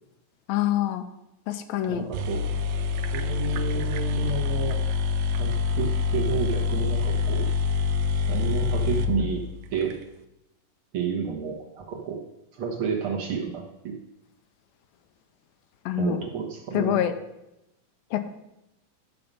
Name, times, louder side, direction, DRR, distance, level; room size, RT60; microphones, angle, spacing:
voice 1, 0.5-1.0 1.5-2.0 15.9-16.2 16.7-17.1 18.1-18.3, left 12 dB, 85° left, 8 dB, 2.5 m, -25 dB
sound 1, 1.8-1.9 2.1-10.0, left 5 dB, 80° right, 1.6 m, -26 dB
voice 2, 1.9-2.6 3.1-4.8 5.4-7.5 8.3-10.0 10.9-12.2 12.5-14.0 16.0-17.0, right 6 dB, 55° right, 0 dB, 1.6 m, -30 dB
12.5 x 6.8 x 5.4 m, 0.90 s
omnidirectional pair, 4.1 m